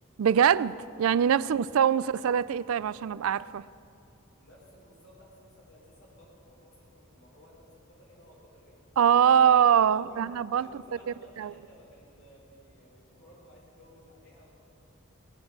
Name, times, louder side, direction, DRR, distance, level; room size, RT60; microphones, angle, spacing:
voice 1, 0.2-3.6 9.0-10.7 11.4-11.5, right 8 dB, 80° right, 0.4 m, -23 dB
voice 2, 4.3-8.8 9.2-9.5 9.9-10.2 10.6-14.5, equal, 55° left, 4.8 m, -56 dB
19.0 x 8.6 x 7.2 m
head